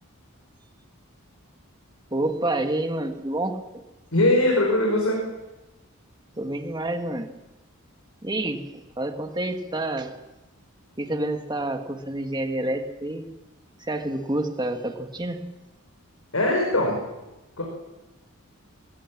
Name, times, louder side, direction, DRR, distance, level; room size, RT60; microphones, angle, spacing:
voice 1, 2.1-3.8 6.4-7.3 8.2-10.2 11.0-13.3 13.8-15.4, right 1 dB, 20° right, 5 dB, 1.7 m, -28 dB
voice 2, 4.1-5.2 16.3-17.0 17.6-17.7, left 1 dB, 75° left, 0 dB, 5.0 m, -21 dB
21.0 x 18.5 x 7.5 m, 1.0 s
head